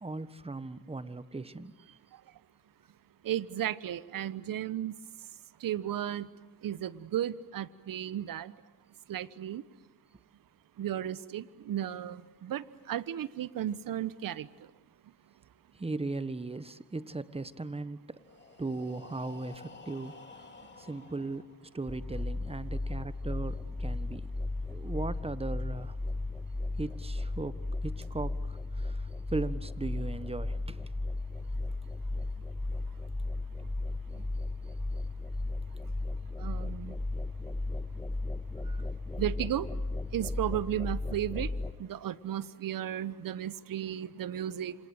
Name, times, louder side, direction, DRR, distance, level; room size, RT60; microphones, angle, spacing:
voice 1, 0.0-1.8 15.7-18.2 18.6-20.2 20.8-24.3 24.7-26.0 26.8-30.9, right 3 dB, 15° right, 14 dB, 1.4 m, -38 dB
voice 2, 3.2-4.9 5.6-6.3 6.6-8.5 9.1-9.6 10.8-14.5 36.4-37.0 39.2-39.7 40.1-41.5 41.8-44.7, right 11 dB, 55° right, 17 dB, 1.2 m, -34 dB
Breathing, 18.1-22.0, left 4 dB, 25° left, 3.3 m, -52 dB
sound 1, 21.9-41.7, left 2 dB, 10° left, 1.7 m, -35 dB
27.0 x 27.0 x 7.9 m, 1.1 s
supercardioid pair, 75°, 41 cm